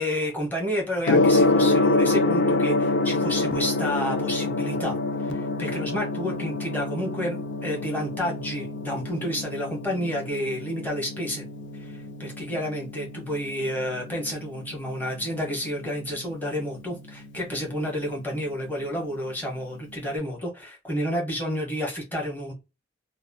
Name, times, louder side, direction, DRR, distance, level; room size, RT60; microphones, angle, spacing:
voice 1, 0.0-4.9 5.3-11.5 11.7-22.5, equal, 10° left, 1.0 m, -30 dB
Gong, 1.0-20.1, left 2 dB, 75° left, 0.4 m, -27 dB
2.7 x 2.0 x 2.6 m
head